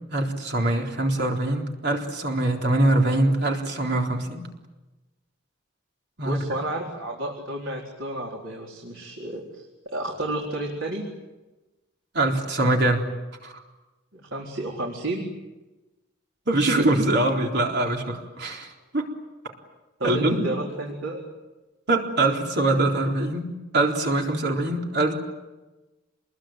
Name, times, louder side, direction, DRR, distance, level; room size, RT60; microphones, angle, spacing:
voice 1, 0.1-4.5 6.2-6.4 12.1-13.0 13.4-13.6 16.5-19.1 20.0-20.5 21.9-25.2, right 2 dB, 60° right, 1 dB, 4.0 m, -23 dB
voice 2, 6.2-11.0 14.1-15.2 20.0-21.2, right 1 dB, 80° right, -1 dB, 4.4 m, -31 dB
28.0 x 21.5 x 9.1 m, 1.1 s
head